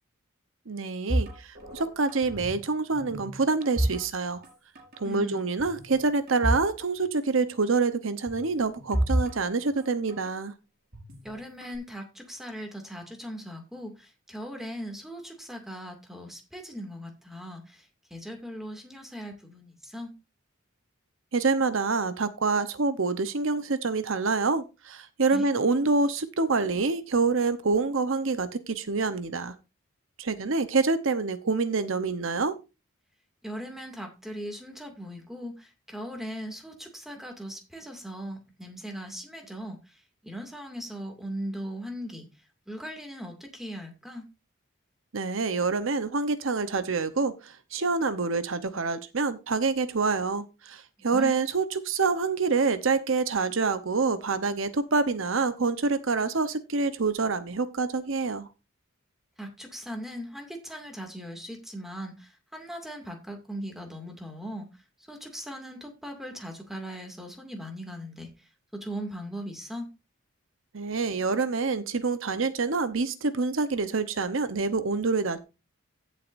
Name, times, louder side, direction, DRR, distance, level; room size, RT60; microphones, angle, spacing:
voice 1, 0.7-4.4 5.0-10.5 21.3-29.5 30.2-32.6 45.1-58.5 70.7-75.4, right 4 dB, 70° right, 11 dB, 0.9 m, -27 dB
sound 1, 1.1-2.6 2.9-4.5 4.8-5.0 5.6-6.7 7.0-7.1 8.3-10.3 10.9-11.8, right 1 dB, 45° right, 4.9 m, -31 dB
voice 2, 5.0-5.4 11.2-20.1 25.3-25.5 33.4-42.3 42.7-44.3 51.0-51.4 59.4-64.7 65.1-68.3 68.7-69.9, equal, ahead, 3 dB, 2.3 m, -39 dB
16.0 x 7.6 x 2.6 m, 0.27 s
head